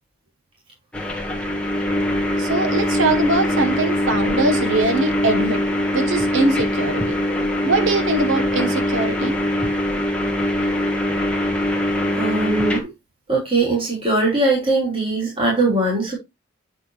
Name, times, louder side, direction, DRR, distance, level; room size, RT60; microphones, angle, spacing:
sound 1, 0.9-12.8, left 1 dB, 5° left, 1.3 m, -22 dB
voice 1, 2.4-5.6 5.9-7.2 7.6-9.4, right 2 dB, 85° right, 1.2 m, -22 dB
voice 2, 12.1-12.9 13.3-16.1, right 2 dB, 30° right, 3.3 m, -20 dB
8.6 x 6.2 x 3.1 m
head